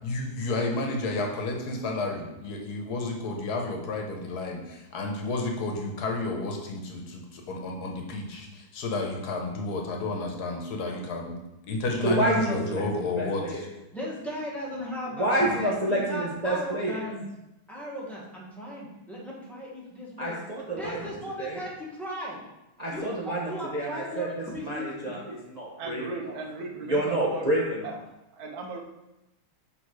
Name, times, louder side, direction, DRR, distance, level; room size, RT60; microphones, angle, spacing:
voice 1, 0.0-11.4 11.7-13.4, left 2 dB, 75° left, 2 dB, 1.5 m, -31 dB
voice 2, 12.0-13.6 15.2-17.0 20.2-21.0 21.4-21.6 22.8-24.3 24.5-26.0 26.9-27.9, right 1 dB, 35° right, -4 dB, 0.8 m, -28 dB
voice 3, 13.9-17.2 17.7-20.3 20.7-22.4 22.9-25.1, equal, ahead, -7 dB, 1.5 m, -37 dB
voice 4, 25.8-27.5 27.8-27.9 28.3-28.8, right 3 dB, 70° right, 3 dB, 1.2 m, -37 dB
6.4 x 3.6 x 4.7 m, 0.94 s
omnidirectional pair, 1.7 m